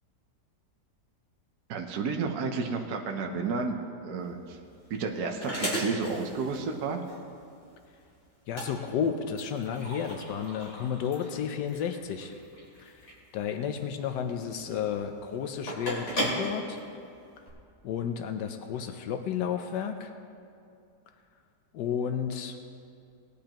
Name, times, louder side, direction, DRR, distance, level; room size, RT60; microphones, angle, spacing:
voice 1, 1.7-4.6 4.9-7.0, right 4 dB, 65° right, 3 dB, 1.3 m, -31 dB
sound 1, 4.2-17.5, equal, 40° left, 3.2 m, -37 dB
voice 2, 8.5-12.3 12.8-13.0 13.3-16.8 17.8-20.1 21.7-22.6, left 8 dB, 85° left, 6 dB, 1.3 m, -32 dB
19.0 x 10.0 x 2.9 m, 2.5 s
omnidirectional pair, 1.8 m